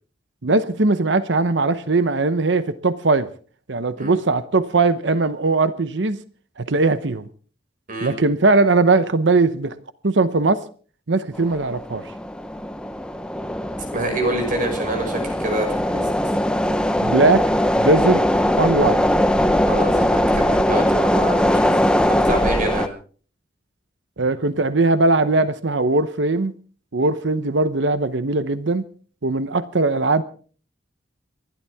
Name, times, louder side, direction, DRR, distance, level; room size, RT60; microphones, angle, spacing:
voice 1, 0.4-3.3 3.7-6.2 6.6-7.3 8.0-9.8 10.0-10.6 11.1-12.0 17.0-17.5 17.8-18.2 18.6-19.1 24.2-26.5 26.9-28.8 29.2-30.2, right 3 dB, 70° right, 0.9 m, -19 dB
sound 1, 11.3-22.9, left 1 dB, 5° left, 0.9 m, -20 dB
voice 2, 13.9-16.4 19.7-21.8 22.1-22.9, right 1 dB, 45° right, 6.0 m, -26 dB
29.0 x 12.0 x 3.5 m
head